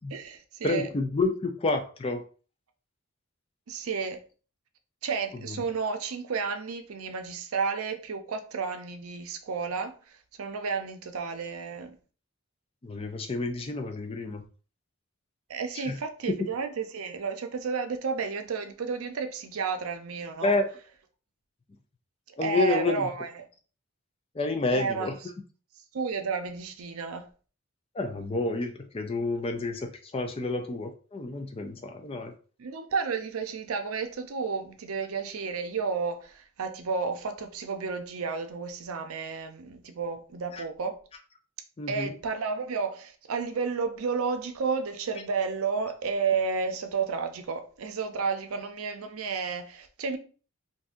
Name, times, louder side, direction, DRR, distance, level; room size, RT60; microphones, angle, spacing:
voice 1, 0.1-0.9 3.7-4.2 5.0-12.0 15.5-20.6 22.3-23.5 24.7-25.2 25.9-27.3 32.6-41.0 41.9-50.2, right 5 dB, 80° right, 0.5 m, -32 dB
voice 2, 0.6-2.2 5.5-5.6 12.8-14.4 15.9-16.0 20.4-20.7 22.4-23.1 24.4-25.2 27.9-32.3 40.5-40.6 41.8-42.1, left 3 dB, 25° left, 0.4 m, -29 dB
2.6 x 2.5 x 3.6 m
head